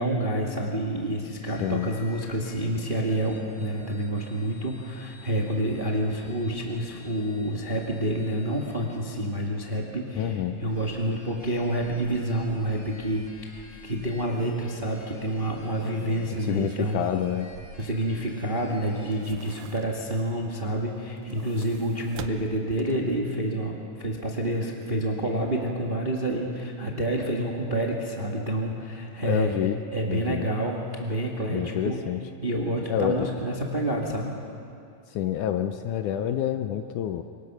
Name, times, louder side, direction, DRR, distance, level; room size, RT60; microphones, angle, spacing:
voice 1, 0.0-17.0 17.8-29.5 29.9-32.0 32.4-34.4, right 1 dB, 30° right, -1 dB, 1.0 m, -28 dB
sound 1, 1.4-9.4 10.3-19.2, left 2 dB, 30° left, 3.5 m, -52 dB
voice 2, 10.2-10.6 16.3-17.5 29.2-29.8 30.1-30.5 31.5-32.2 32.9-33.3 35.1-37.2, left 10 dB, 75° left, 7 dB, 1.9 m, -28 dB
sound 2, 13.9-14.0 14.4-14.5 15.5-18.5 18.9-20.2 21.1-23.2 23.6-23.7, right 9 dB, 70° right, 1.7 m, -45 dB
26.0 x 23.0 x 6.1 m, 2.5 s
omnidirectional pair, 4.1 m